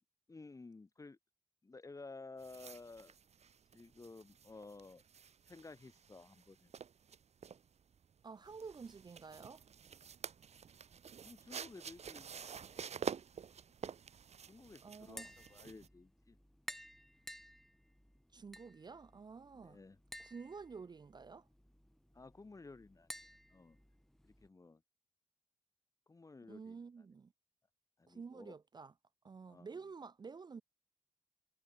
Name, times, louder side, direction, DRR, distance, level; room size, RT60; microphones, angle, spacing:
voice 1, 0.3-1.2 1.6-3.1 3.7-5.0 5.5-6.7 11.2-13.1 14.5-16.4 19.5-20.0 22.1-23.1 23.5-23.8 24.2-24.8 26.1-26.8 28.0-28.6 29.5-29.7, left 3 dB, 25° left, 0.9 m, -54 dB
sound 1, 2.4-15.9, right 7 dB, 60° right, 0.8 m, -49 dB
voice 2, 8.2-9.6 14.8-15.3 18.3-19.8 20.2-21.5 26.5-27.3 28.1-28.9 29.2-30.6, right 5 dB, 35° right, 0.4 m, -50 dB
Tap, 15.0-24.5, equal, 5° left, 1.6 m, -55 dB
cardioid pair, 85°, 13 cm